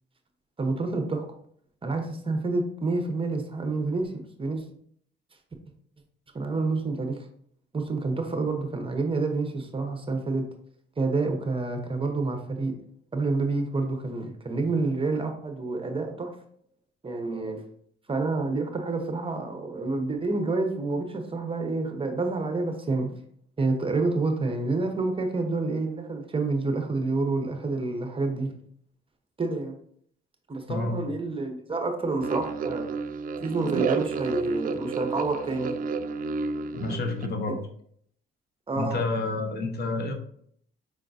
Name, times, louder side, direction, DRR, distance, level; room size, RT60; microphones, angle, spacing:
voice 1, 0.6-1.3 1.8-4.6 6.3-7.2 7.7-10.4 11.0-12.7 13.1-16.3 17.0-17.6 18.1-23.1 23.6-28.5 29.4-29.8 30.5-32.9 33.4-35.8 38.7-39.0, right 3 dB, 25° right, 4 dB, 0.9 m, -28 dB
voice 2, 30.7-31.1 36.7-37.6 38.7-40.1, left 3 dB, 55° left, 5 dB, 0.9 m, -29 dB
sound 1, 32.2-37.3, right 5 dB, 45° right, 0.4 m, -31 dB
5.3 x 3.7 x 2.6 m, 0.63 s
cardioid pair, 90°, 20 cm